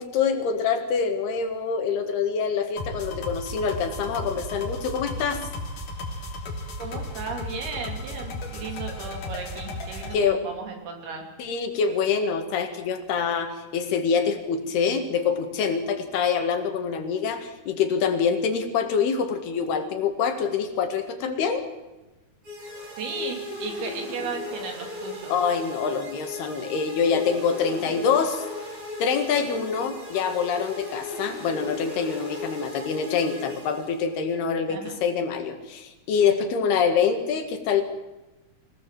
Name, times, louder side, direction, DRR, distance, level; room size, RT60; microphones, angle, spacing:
voice 1, 0.0-5.5 10.1-10.4 11.4-21.6 25.3-28.5 29.0-37.8, left 6 dB, 90° left, 6 dB, 4.0 m, -25 dB
sound 1, 2.8-10.1, left 1 dB, 60° left, 4.5 m, -35 dB
voice 2, 6.8-11.2 23.0-25.3 34.7-35.0, right 5 dB, 80° right, 3 dB, 5.2 m, -35 dB
sound 2, 22.4-34.3, left 2 dB, 45° right, 9.0 m, -37 dB
25.0 x 17.5 x 7.7 m, 1.1 s
omnidirectional pair, 4.4 m